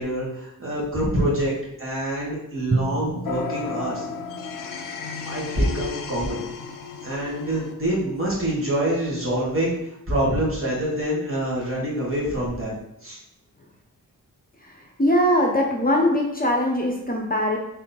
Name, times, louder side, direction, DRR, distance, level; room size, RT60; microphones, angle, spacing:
voice 1, 0.0-4.0 4.6-4.8 5.2-6.4 7.0-9.8 10.1-12.8 13.0-13.2, right 1 dB, 40° right, -5 dB, 1.7 m, -26 dB
Drum, 2.7-5.7, right 2 dB, 20° right, 0.3 m, -31 dB
sound 1, 3.2-7.7, left 6 dB, 70° left, 0.6 m, -34 dB
voice 2, 15.0-17.6, equal, 25° left, 0 dB, 0.7 m, -21 dB
3.7 x 3.3 x 4.1 m, 0.82 s
wide cardioid pair, 85°, 34 cm